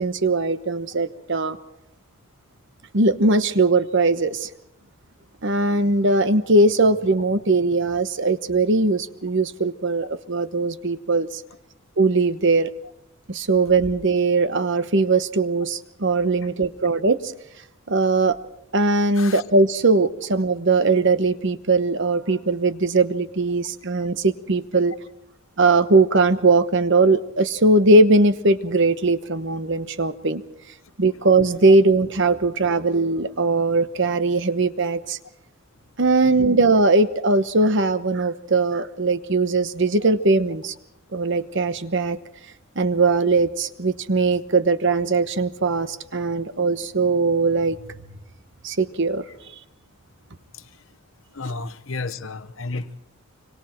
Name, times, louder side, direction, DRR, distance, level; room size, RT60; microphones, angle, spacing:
voice 1, 0.0-1.6 2.9-4.5 5.4-11.4 12.0-12.7 13.3-17.3 17.9-18.4 18.7-24.9 25.6-30.4 31.0-35.2 36.0-40.7 41.1-42.2 42.8-48.0 48.6-49.2, right 3 dB, 60° right, 12 dB, 1.0 m, -20 dB
voice 2, 51.3-53.0, left 3 dB, 65° left, 11 dB, 1.0 m, -33 dB
26.0 x 25.5 x 4.5 m, 0.74 s
head